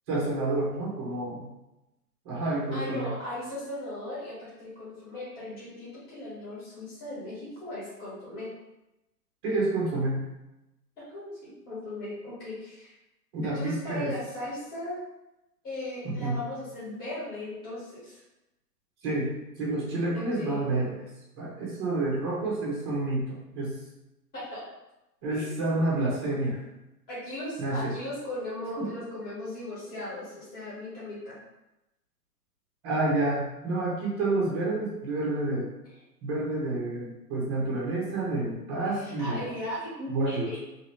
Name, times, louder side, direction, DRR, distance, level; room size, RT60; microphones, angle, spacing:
voice 1, 0.1-1.5 2.2-3.1 9.4-10.3 13.3-14.1 16.0-16.4 19.0-19.3 19.6-20.9 21.4-23.7 25.2-26.6 27.6-27.9 28.8-28.9 32.8-35.7 36.2-39.4 40.1-40.4, right 2 dB, 15° right, -5 dB, 0.6 m, -29 dB
voice 2, 2.7-8.5 11.0-12.9 13.4-15.0 15.6-18.2 20.1-20.6 24.3-24.6 25.3-25.5 27.1-31.4 38.9-40.6, left 1 dB, 20° left, -9 dB, 1.4 m, -37 dB
3.1 x 2.9 x 3.0 m, 0.94 s
hypercardioid pair, 145°, 48 cm